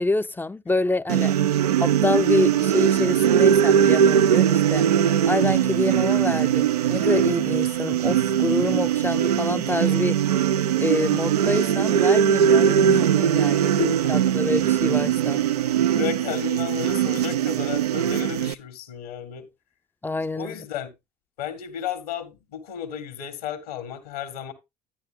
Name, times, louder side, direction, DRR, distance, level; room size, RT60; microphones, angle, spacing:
voice 1, 0.0-1.3 1.8-4.9 5.2-10.2 10.8-15.4 20.0-20.6, left 2 dB, 10° left, 0.5 m, -27 dB
sound 1, 1.1-18.5, right 9 dB, 85° right, 0.4 m, -20 dB
voice 2, 13.6-14.4 16.0-19.5 20.4-20.9 21.4-24.5, left 9 dB, 75° left, 2.0 m, -33 dB
11.5 x 10.0 x 2.3 m
hypercardioid pair, 65°, 20 cm